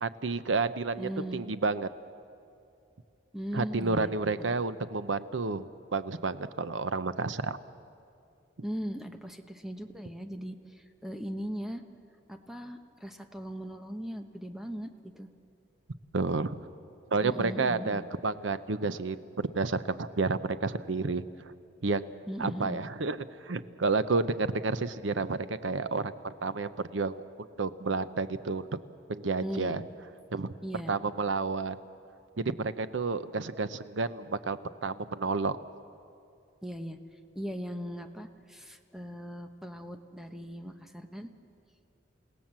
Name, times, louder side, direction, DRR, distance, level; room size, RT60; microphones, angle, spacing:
voice 1, 0.0-1.9 3.5-7.6 16.1-16.6 17.1-21.2 21.8-22.0 22.4-27.2 27.6-28.7 29.1-29.8 30.3-31.8 32.4-35.6, right 3 dB, 80° right, 13 dB, 0.8 m, -30 dB
voice 2, 1.0-1.4 3.3-4.1 4.4-4.5 8.6-10.6 11.0-11.8 12.3-14.9 15.1-15.3 17.2-18.0 22.3-22.8 29.4-29.8 30.6-30.9 36.6-37.0 37.3-41.3, equal, ahead, 6 dB, 1.0 m, -38 dB
29.0 x 17.0 x 7.5 m, 2.5 s
head